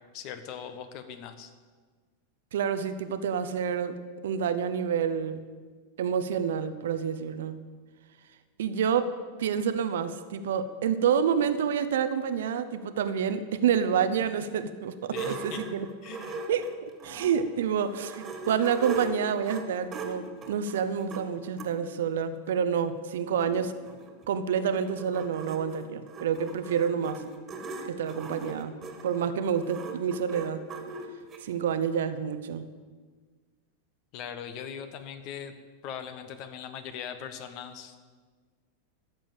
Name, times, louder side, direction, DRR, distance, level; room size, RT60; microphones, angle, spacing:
voice 1, 0.0-1.5 15.1-15.7 16.0-16.5 34.1-35.5 35.8-38.0, left 8 dB, 40° left, 9 dB, 1.2 m, -40 dB
voice 2, 2.5-4.0 4.2-5.5 6.0-7.6 8.6-15.9 16.5-16.7 17.0-23.8 24.3-27.2 27.8-28.8 29.0-30.6 31.4-32.7, right 7 dB, 60° right, 11 dB, 0.8 m, -28 dB
sound 1, 15.1-17.5 17.9-21.7 22.5-22.6 22.9-23.0 23.1-31.4, right 3 dB, 25° right, 2.0 m, -39 dB
13.5 x 7.1 x 8.9 m, 1.5 s
figure-of-eight pair, 90°, 0 cm